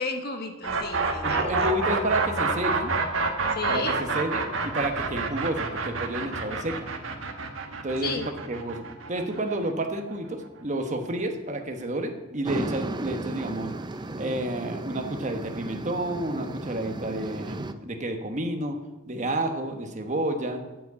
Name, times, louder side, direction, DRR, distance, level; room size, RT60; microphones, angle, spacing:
voice 1, 0.0-1.7 3.5-4.0 8.0-8.2, left 4 dB, 50° left, 5 dB, 1.2 m, -33 dB
sound 1, 0.6-10.5, right 4 dB, 85° right, 1.4 m, -28 dB
voice 2, 1.2-2.9 3.7-3.8 4.1-6.9 7.8-8.1 8.5-13.7 14.2-18.8 19.1-20.6, right 1 dB, 40° right, 4 dB, 1.2 m, -30 dB
sound 2, 12.4-17.7, right 2 dB, 20° right, 0.5 m, -35 dB
8.4 x 7.3 x 8.1 m, 1.1 s
head